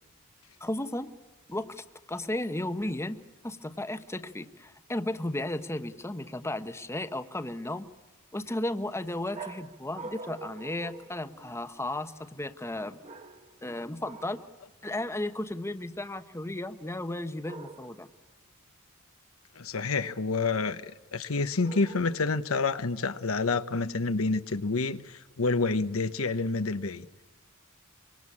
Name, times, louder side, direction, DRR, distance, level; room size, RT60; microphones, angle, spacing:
voice 1, 0.6-1.1 1.5-7.9 8.3-13.0 13.6-14.4 14.8-18.1, left 1 dB, 15° left, 1.0 m, -34 dB
sound 1, 9.3-11.8 13.0-13.6 14.0-14.5 17.4-18.1 21.6-22.4, right 3 dB, 35° right, 1.7 m, -45 dB
voice 2, 19.6-27.1, left 3 dB, 70° left, 1.0 m, -28 dB
25.0 x 23.5 x 8.6 m
head